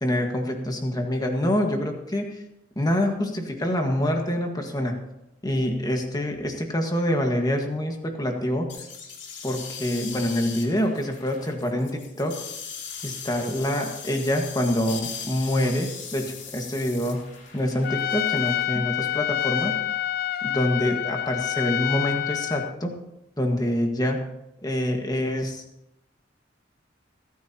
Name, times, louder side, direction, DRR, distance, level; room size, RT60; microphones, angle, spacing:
voice 1, 0.0-2.4 2.7-5.0 5.4-8.7 9.4-12.4 13.0-17.2 17.5-19.7 20.4-23.0 23.4-24.2 24.6-25.6, left 1 dB, 20° left, 3 dB, 1.6 m, -26 dB
sound 1, 8.7-18.6, left 6 dB, 65° left, 2.6 m, -39 dB
Trumpet, 17.8-22.7, left 12 dB, 50° left, 0.5 m, -27 dB
28.0 x 9.3 x 2.9 m, 0.87 s
head